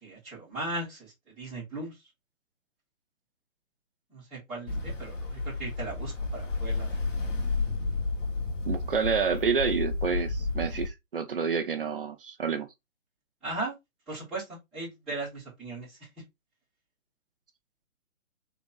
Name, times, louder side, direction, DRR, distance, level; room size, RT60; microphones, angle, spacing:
voice 1, 0.0-2.0 4.1-7.0 13.4-13.7 14.1-16.0, right 2 dB, ahead, 0.6 m, -37 dB
Ocean, 4.7-10.9, left 3 dB, 60° left, 2.0 m, -31 dB
voice 2, 8.7-12.7, right 6 dB, 40° right, 0.7 m, -28 dB
4.0 x 2.9 x 3.6 m
figure-of-eight pair, 135°, 41 cm